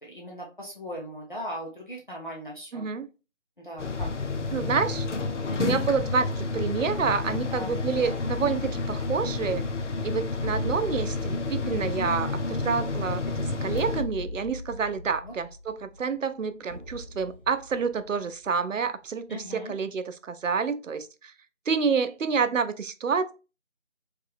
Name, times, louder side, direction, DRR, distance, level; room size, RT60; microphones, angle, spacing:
voice 1, 0.0-2.9 3.6-4.1 5.5-5.9 7.5-7.7 15.1-15.3 19.3-19.7, left 1 dB, 40° left, 0.9 m, -38 dB
voice 2, 2.7-3.1 4.5-5.1 5.6-9.6 10.0-21.3 21.7-23.3, right 5 dB, 85° right, 0.6 m, -28 dB
sound 1, 3.8-14.0, left 3 dB, 70° left, 0.6 m, -30 dB
sound 2, 10.4-19.0, left 1 dB, 45° right, 0.8 m, -40 dB
3.2 x 2.9 x 3.2 m
figure-of-eight pair, 175°, 37 cm